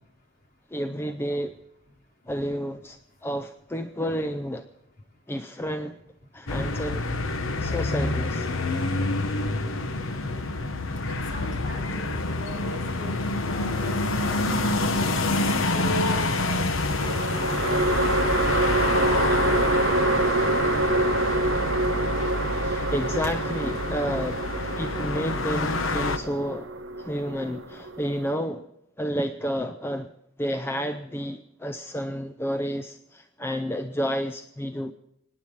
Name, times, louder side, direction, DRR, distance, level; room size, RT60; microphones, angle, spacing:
voice 1, 0.7-1.5 2.3-4.7 5.3-6.0 6.3-7.2 7.6-8.5 22.6-26.7 27.0-28.7 29.0-30.1 30.4-34.9, equal, 10° left, 9 dB, 0.5 m, -30 dB
sound 1, 6.5-26.2, left 2 dB, 70° left, 1.0 m, -27 dB
voice 2, 7.6-8.5 8.7-9.0 10.8-20.3 22.1-22.3, equal, 45° left, 0 dB, 3.8 m, -41 dB
sound 2, 13.8-14.7 16.9-28.3, right 2 dB, 65° right, 1.0 m, -26 dB
25.0 x 10.0 x 4.7 m, 0.79 s
head